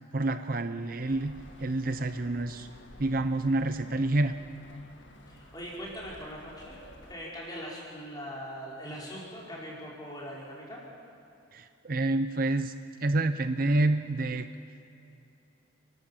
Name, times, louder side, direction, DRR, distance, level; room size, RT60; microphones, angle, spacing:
voice 1, 0.1-2.7 3.0-4.4 11.5-12.7 13.0-14.5, right 2 dB, 45° right, 10 dB, 0.6 m, -28 dB
sound 1, 1.0-7.1, left 1 dB, 75° left, 2.0 m, -52 dB
voice 2, 5.3-6.8 7.1-10.8, equal, 20° left, -5 dB, 5.0 m, -41 dB
30.0 x 13.5 x 7.2 m, 2.8 s
head